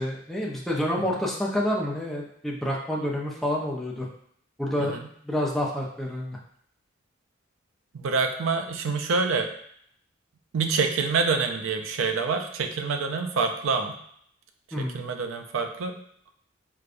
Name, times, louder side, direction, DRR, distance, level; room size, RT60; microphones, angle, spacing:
voice 1, 0.0-4.1 4.6-4.9 5.2-6.4 14.7-15.0, left 1 dB, ahead, -3 dB, 0.5 m, -28 dB
voice 2, 7.9-9.5 10.5-14.0 14.8-16.0, right 4 dB, 85° right, 5 dB, 0.4 m, -26 dB
4.9 x 2.2 x 2.5 m, 0.67 s
head